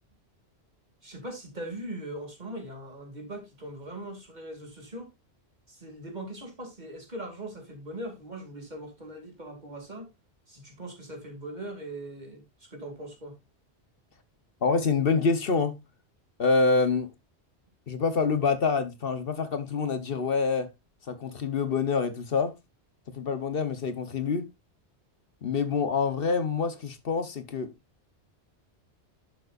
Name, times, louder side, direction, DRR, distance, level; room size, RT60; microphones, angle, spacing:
voice 1, 1.0-5.1 5.7-10.1 10.5-13.4, right 1 dB, 40° right, 2.6 m, -40 dB
voice 2, 14.6-15.8 16.4-17.1 17.9-20.7 21.1-22.5 23.1-24.5 25.4-27.7, left 4 dB, 60° left, 1.2 m, -26 dB
11.0 x 6.8 x 2.5 m
omnidirectional pair, 1.1 m